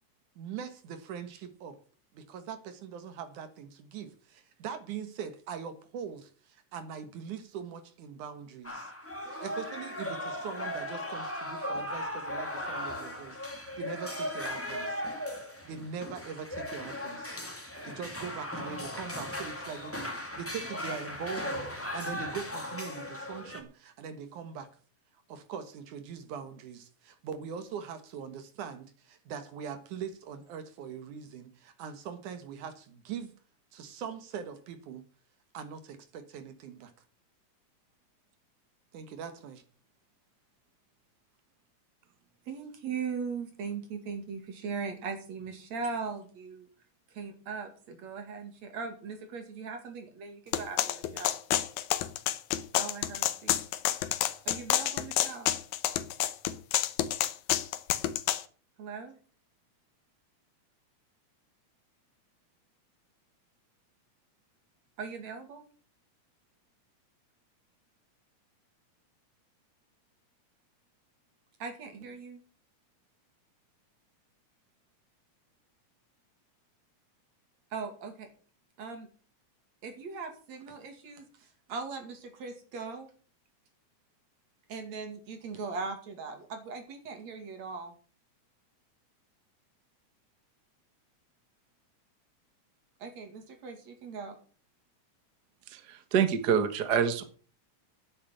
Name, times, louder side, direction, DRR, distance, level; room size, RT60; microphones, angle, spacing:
voice 1, 0.4-1.8 2.1-8.9 9.3-15.0 15.6-17.4 17.8-24.7 25.3-33.3 33.7-35.1 35.5-36.9 38.9-39.6, right 7 dB, 80° right, 2.8 m, -42 dB
sound 1, 8.6-23.6, left 1 dB, 5° left, 1.7 m, -37 dB
voice 2, 42.5-46.7 47.1-51.4 52.7-53.6 54.4-55.5 58.8-59.2 65.0-65.6 71.6-72.4 77.7-78.3 78.8-79.1 79.8-83.1 84.7-87.9 93.0-94.4, right 5 dB, 60° right, 3.5 m, -39 dB
sound 2, 50.5-58.4, left 12 dB, 75° left, 2.2 m, -28 dB
voice 3, 95.7-97.2, right 7 dB, 45° right, 1.4 m, -26 dB
9.9 x 8.4 x 7.9 m
omnidirectional pair, 3.5 m